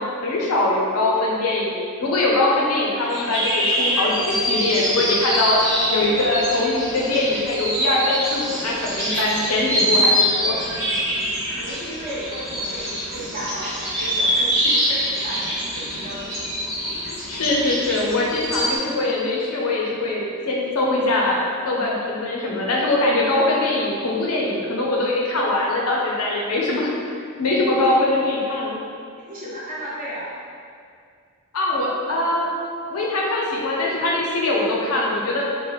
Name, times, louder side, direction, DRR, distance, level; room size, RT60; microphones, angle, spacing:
voice 1, 0.0-10.1 10.4-10.6 17.0-26.9 27.4-28.8 31.5-32.5 32.9-35.4, left 2 dB, 85° left, -3 dB, 0.7 m, -22 dB
sound 1, 2.1-3.1 4.0-5.2 5.8-7.1 7.6-7.7, left 3 dB, 40° left, 0.5 m, -38 dB
sound 2, 3.1-18.8, equal, 10° right, 1.0 m, -24 dB
voice 2, 8.8-9.3 11.5-16.4 29.3-30.5, equal, 40° right, -9 dB, 0.8 m, -34 dB
3.2 x 2.5 x 3.9 m, 2.2 s
head